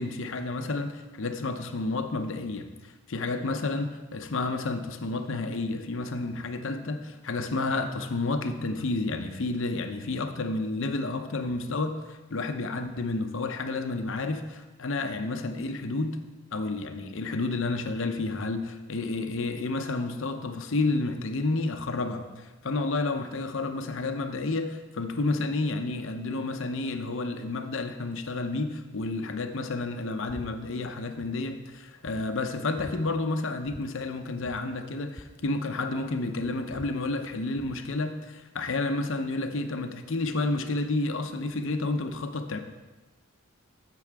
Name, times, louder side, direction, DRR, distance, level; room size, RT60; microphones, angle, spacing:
voice 1, 0.0-16.2 16.5-42.6, left 3 dB, 60° left, 7 dB, 0.7 m, -30 dB
sound 1, 30.3-30.5 30.8-31.3 31.7-31.8 32.1-33.0 33.6-33.9 34.1-34.2 34.4-36.1 36.4-37.8, left 1 dB, 10° left, 0.3 m, -46 dB
11.0 x 7.6 x 3.5 m, 1.2 s
head